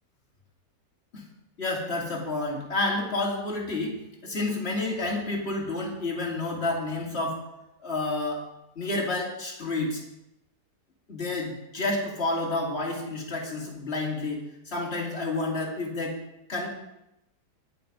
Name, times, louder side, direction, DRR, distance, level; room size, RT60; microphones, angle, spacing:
voice 1, 1.6-7.4 7.8-8.4 8.7-10.0 11.1-16.1 16.5-16.7, left 2 dB, 35° left, -1 dB, 3.0 m, -30 dB
20.5 x 6.9 x 5.3 m, 0.86 s
omnidirectional pair, 1.8 m